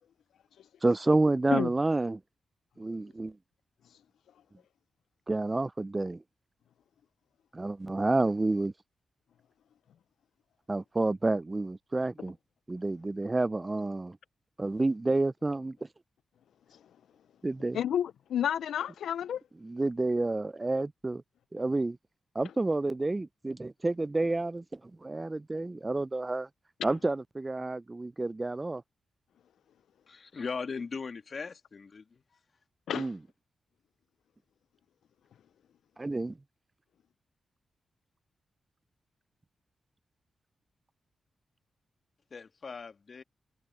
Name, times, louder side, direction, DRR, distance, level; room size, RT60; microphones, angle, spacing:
voice 1, 0.8-2.2 2.8-3.4 5.3-6.2 7.5-8.7 10.7-12.4 12.7-14.2 14.6-15.8 17.4-17.8 19.6-21.2 21.5-22.0 22.4-26.5 26.8-28.8 32.9-33.2 36.0-36.4, right 2 dB, 30° right, 0.4 m, -29 dB
voice 2, 17.7-19.4 32.9-33.1, left 9 dB, 85° left, 0.4 m, -30 dB
voice 3, 30.1-32.0 42.3-43.2, left 5 dB, 55° left, 1.6 m, -39 dB
supercardioid pair, 50°, 0 cm